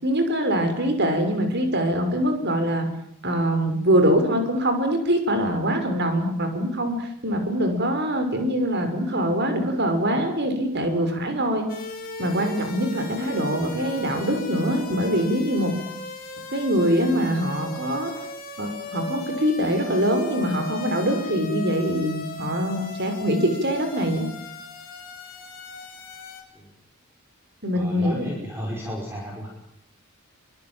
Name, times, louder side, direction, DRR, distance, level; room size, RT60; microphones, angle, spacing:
voice 1, 0.0-2.9 3.2-11.7 12.2-15.7 16.5-18.1 18.6-24.3 27.6-28.3, equal, 50° right, 6 dB, 6.1 m, -23 dB
sound 1, 11.7-26.4, left 3 dB, 40° left, 7.1 m, -37 dB
voice 2, 27.7-29.5, equal, 10° right, -1 dB, 5.5 m, -33 dB
25.5 x 25.0 x 9.2 m, 0.71 s
head